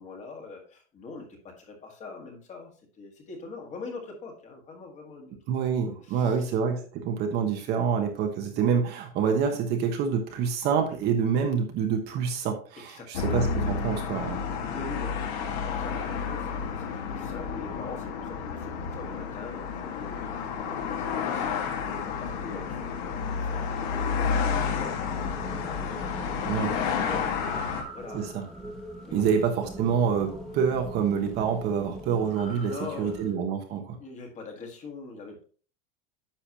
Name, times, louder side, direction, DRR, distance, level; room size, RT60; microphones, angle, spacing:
voice 1, 0.0-5.4 5.8-6.5 12.9-13.3 14.7-28.4 29.1-29.3 32.5-33.3 34.0-35.4, left 4 dB, 20° left, 2 dB, 1.7 m, -43 dB
voice 2, 5.5-14.5 26.4-26.7 28.1-28.4 29.1-32.7 33.0-34.0, right 7 dB, 30° right, 4 dB, 1.1 m, -27 dB
sound 1, 13.1-27.8, left 6 dB, 50° left, 1.8 m, -30 dB
sound 2, 25.0-33.3, right 1 dB, ahead, 1.6 m, -42 dB
10.0 x 6.8 x 2.9 m, 0.39 s
supercardioid pair, 175°, 31 cm